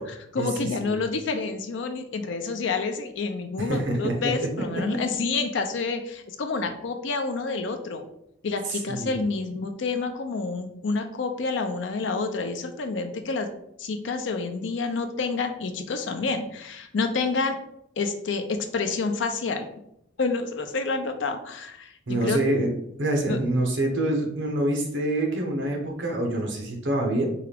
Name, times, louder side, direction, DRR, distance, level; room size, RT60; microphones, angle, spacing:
voice 1, 0.0-8.0 8.4-13.5 13.8-17.6 18.0-19.7 20.2-22.4 23.3-23.4, left 4 dB, 70° left, 7 dB, 0.5 m, -28 dB
voice 2, 3.6-4.1 8.9-9.1 22.1-22.7 23.0-27.3, right 1 dB, 70° right, 1 dB, 1.0 m, -26 dB
4.6 x 2.4 x 3.3 m, 0.76 s
head